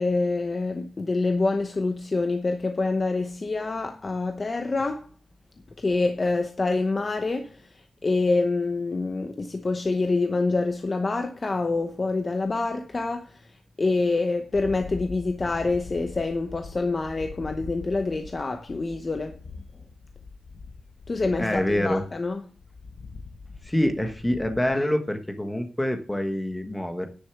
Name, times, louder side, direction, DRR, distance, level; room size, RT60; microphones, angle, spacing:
voice 1, 0.0-5.1 5.8-19.4 21.1-22.4, left 3 dB, 25° left, 0.8 m, -26 dB
sound 1, 14.5-24.7, left 4 dB, 55° left, 1.1 m, -43 dB
voice 2, 21.4-22.0 23.6-27.1, left 1 dB, 10° left, 1.2 m, -26 dB
10.0 x 6.9 x 5.9 m
wide cardioid pair, 175°, 0 cm